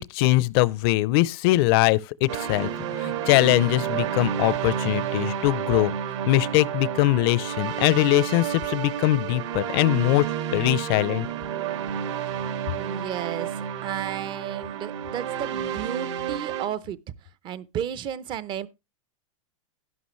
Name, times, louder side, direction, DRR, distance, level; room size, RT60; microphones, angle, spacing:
voice 1, 0.0-5.9 6.3-10.3 10.5-11.3, left 18 dB, 45° left, 0.6 m, -22 dB
sound 1, 2.3-16.7, right 9 dB, 60° right, 1.9 m, -30 dB
voice 2, 12.8-17.0 17.4-18.7, right 10 dB, 30° right, 0.7 m, -33 dB
11.0 x 11.0 x 3.1 m
hypercardioid pair, 140°, 17 cm